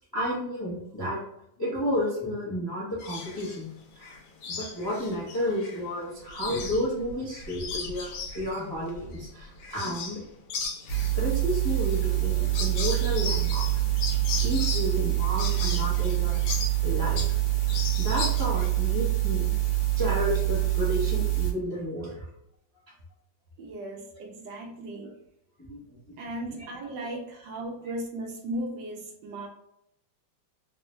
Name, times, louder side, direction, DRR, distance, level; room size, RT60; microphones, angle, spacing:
voice 1, 0.1-1.2 1.6-3.7 3.9-4.1 4.5-10.2 11.1-13.8 14.4-16.5 16.8-17.2 18.0-19.5 20.0-22.3 25.6-25.8 26.5-26.7, equal, 25° left, -7 dB, 0.5 m, -31 dB
sound 1, 3.0-3.6 4.0-5.8 6.1-10.2 10.5-17.4 17.7-18.7, left 4 dB, 90° left, 1.5 m, -36 dB
sound 2, 10.9-21.5, right 17 dB, 65° left, 1.3 m, -26 dB
voice 2, 23.6-25.1 26.2-29.5, right 1 dB, 70° right, 0 dB, 1.2 m, -36 dB
3.5 x 2.2 x 3.0 m, 0.79 s
omnidirectional pair, 2.1 m